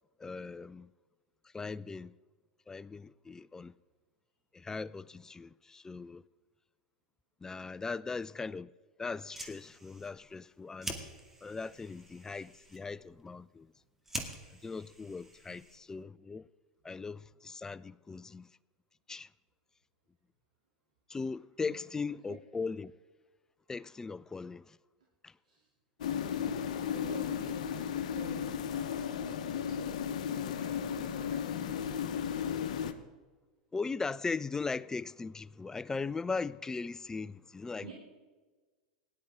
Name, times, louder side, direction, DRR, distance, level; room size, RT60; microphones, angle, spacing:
voice 1, 0.2-0.9 1.5-2.1 2.7-3.7 4.5-6.2 7.4-8.7 9.0-11.1 11.4-13.7 14.6-16.5 16.8-18.5 19.1-19.3 21.1-22.9 23.7-24.8 25.2-25.3 33.7-37.9, left 4 dB, 15° left, 0.3 m, -39 dB
Fire, 9.1-16.0, right 1 dB, 10° right, 2.1 m, -46 dB
voice 2, 22.1-22.4 25.5-25.6 26.8-30.2 30.5-32.2 37.8-37.9, right 3 dB, 90° right, 2.7 m, -51 dB
sound 1, 26.0-32.9, left 8 dB, 70° left, 0.9 m, -34 dB
18.0 x 11.0 x 3.6 m
hypercardioid pair, 90°, 4 cm